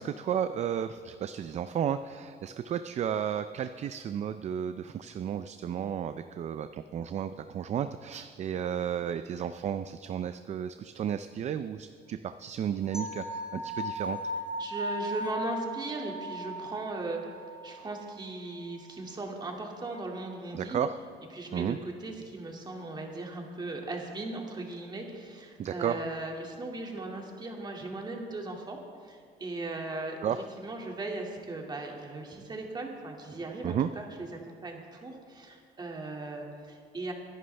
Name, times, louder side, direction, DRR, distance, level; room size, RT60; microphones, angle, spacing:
voice 1, 0.0-14.2 20.5-20.9 21.5-21.8 25.6-26.0 30.2-30.4 33.6-33.9, right 9 dB, 40° right, 11 dB, 0.4 m, -33 dB
sound 1, 12.9-18.0, equal, 30° left, 1.6 m, -37 dB
sound 2, 12.9-15.9, right 3 dB, 5° right, 2.8 m, -53 dB
voice 2, 14.6-17.2 17.6-20.8 21.3-28.8 29.0-30.2 30.6-37.1, right 2 dB, 25° right, 1 dB, 2.3 m, -38 dB
23.0 x 11.0 x 3.4 m, 2.1 s
cardioid pair, 110°, 17 cm